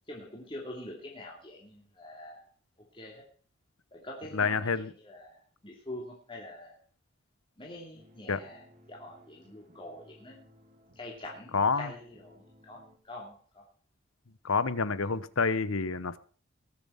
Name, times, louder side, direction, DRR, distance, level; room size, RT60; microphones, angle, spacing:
voice 1, 0.1-2.4 2.9-3.2 3.9-6.8 7.6-10.4 10.9-13.7 14.8-14.9, left 1 dB, 25° left, -2 dB, 2.7 m, -45 dB
voice 2, 4.3-4.9 8.3-8.4 11.5-11.9 14.4-16.2, left 4 dB, 70° left, 15 dB, 1.0 m, -28 dB
sound 1, 7.9-13.0, left 1 dB, 35° right, 2.5 m, -60 dB
20.5 x 7.2 x 5.7 m, 0.43 s
head